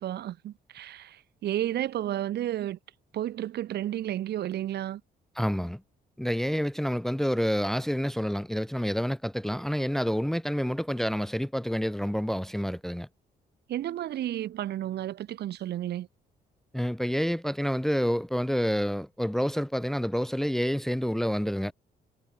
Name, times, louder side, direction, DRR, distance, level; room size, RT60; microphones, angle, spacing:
voice 1, 0.0-2.8 3.1-5.0 13.7-16.1, right 12 dB, 75° right, 2.9 m, -32 dB
voice 2, 5.4-5.8 6.2-13.1 16.7-21.7, equal, ahead, 0.8 m, -28 dB
cardioid pair, 145°, 17 cm